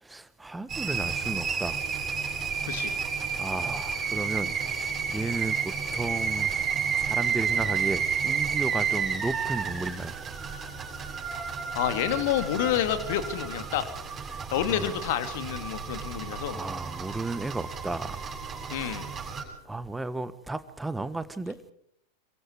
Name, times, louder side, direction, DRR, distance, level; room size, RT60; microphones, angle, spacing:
voice 1, 0.0-1.8 3.4-10.1 14.3-15.0 16.5-18.3 18.7-19.1 19.6-21.7, right 2 dB, 5° right, 1.4 m, -34 dB
sound 1, 0.7-19.4, right 6 dB, 20° right, 7.7 m, -31 dB
voice 2, 2.6-2.9 11.7-13.8 14.5-16.6 18.7-19.0, left 11 dB, 50° left, 2.6 m, -28 dB
27.5 x 23.5 x 4.7 m
figure-of-eight pair, 90°, 0 cm